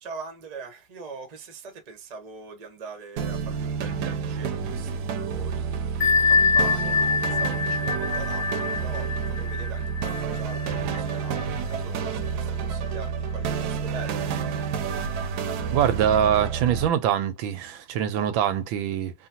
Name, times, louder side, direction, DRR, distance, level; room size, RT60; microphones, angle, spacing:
voice 1, 0.0-5.9 6.3-14.3, right 4 dB, 45° right, 0.5 m, -42 dB
sound 1, 3.2-16.9, right 6 dB, 70° right, 1.0 m, -29 dB
Bell, 6.0-11.4, left 5 dB, 50° left, 1.7 m, -25 dB
voice 2, 15.7-19.1, right 9 dB, 90° right, 1.5 m, -23 dB
3.9 x 2.2 x 2.8 m
omnidirectional pair, 2.1 m